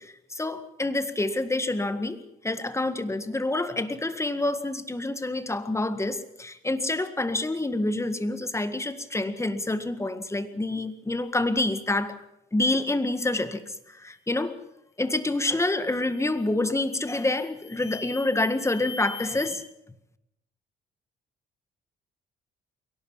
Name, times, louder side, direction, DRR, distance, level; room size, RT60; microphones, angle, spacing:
voice 1, 0.0-12.2 12.5-13.6 13.9-14.5 15.0-19.6, left 2 dB, 15° left, 11 dB, 1.8 m, -27 dB
sound 1, 15.8-16.4 16.9-19.5, left 5 dB, 60° left, 7.5 m, -44 dB
22.5 x 18.0 x 7.3 m, 0.84 s
cardioid pair, 90°, 20 cm